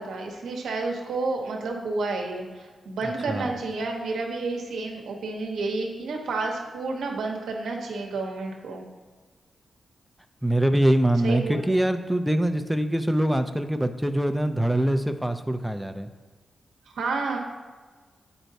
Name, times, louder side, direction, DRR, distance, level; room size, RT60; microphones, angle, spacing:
voice 1, 0.0-8.8 11.2-11.8 16.9-17.4, right 3 dB, 90° right, 1 dB, 0.9 m, -30 dB
voice 2, 10.4-16.1, right 1 dB, 5° right, 9 dB, 0.5 m, -24 dB
8.8 x 4.5 x 2.7 m, 1.4 s
cardioid pair, 65°, 0 cm